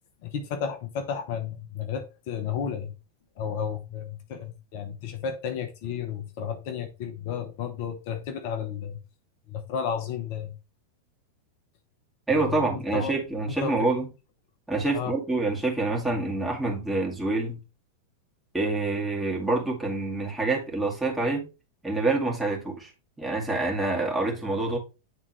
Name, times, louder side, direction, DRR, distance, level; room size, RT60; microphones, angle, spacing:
voice 1, 0.2-2.9 3.4-9.0 9.5-10.6 12.3-13.2 13.6-13.9 14.9-15.2, left 7 dB, 50° left, 0.8 m, -33 dB
voice 2, 12.3-14.1 14.7-17.6 18.5-21.5 21.8-22.9 23.2-24.8, right 2 dB, 5° right, 2.1 m, -26 dB
9.1 x 3.6 x 3.1 m
figure-of-eight pair, 90°, 0 cm